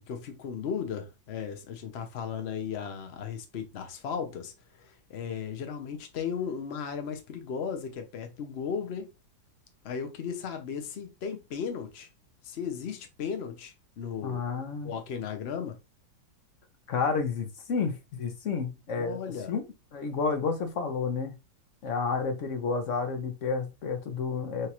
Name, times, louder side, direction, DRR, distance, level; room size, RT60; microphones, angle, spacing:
voice 1, 0.0-4.5 4.8-9.1 9.8-12.1 12.4-14.4 14.8-15.8 18.9-19.5, left 7 dB, 80° left, 0.5 m, -36 dB
voice 2, 14.2-15.0 16.9-19.2 19.5-19.6 19.9-21.4 21.8-24.7, left 5 dB, 55° left, 0.9 m, -30 dB
6.2 x 2.4 x 2.9 m
omnidirectional pair, 2.0 m